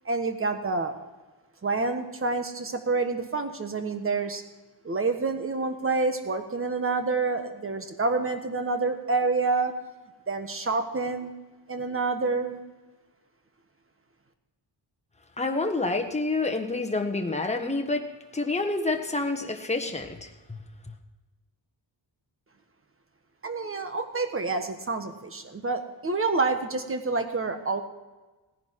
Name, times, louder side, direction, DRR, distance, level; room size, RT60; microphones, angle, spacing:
voice 1, 0.0-0.9 1.6-4.4 4.8-9.7 10.3-11.4 11.7-12.6 23.4-27.8, right 3 dB, 30° right, 7 dB, 1.4 m, -28 dB
voice 2, 15.4-18.0 18.3-20.9, left 3 dB, 15° left, 4 dB, 1.3 m, -28 dB
17.5 x 10.5 x 4.7 m, 1.2 s
wide cardioid pair, 140°, 43 cm